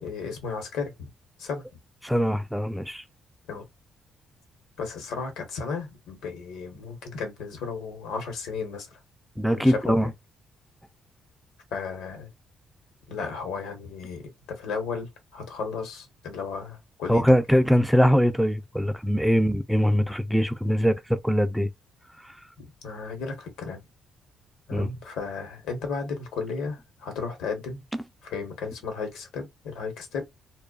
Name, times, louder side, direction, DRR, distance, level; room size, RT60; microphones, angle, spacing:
voice 1, 0.0-1.1 1.4-1.6 3.5-3.6 4.8-9.0 9.5-10.1 11.7-12.3 13.1-17.4 22.6-23.8 24.7-27.8 28.2-30.2, left 5 dB, 90° left, 1.0 m, -34 dB
voice 2, 2.0-3.0 9.4-10.1 17.1-21.7 24.7-24.9, equal, ahead, 0.3 m, -22 dB
2.3 x 2.2 x 2.4 m
cardioid pair, 90°, 0 cm